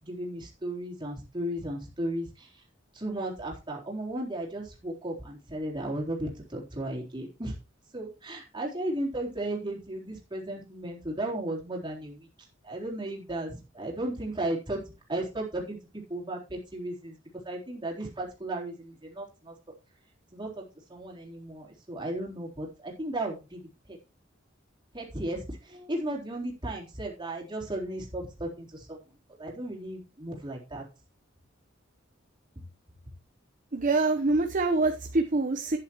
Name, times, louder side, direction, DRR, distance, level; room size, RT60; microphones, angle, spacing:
voice 1, 0.0-2.5 2.9-7.5 7.9-12.3 12.6-14.8 15.1-15.8 16.1-17.2 17.4-19.5 20.3-20.6 20.9-23.6 23.9-24.0 24.9-29.0 29.4-30.8, right 1 dB, 25° right, -1 dB, 3.7 m, -35 dB
voice 2, 33.7-35.8, right 3 dB, 45° right, 6 dB, 0.9 m, -25 dB
11.5 x 10.0 x 3.0 m, 0.30 s
head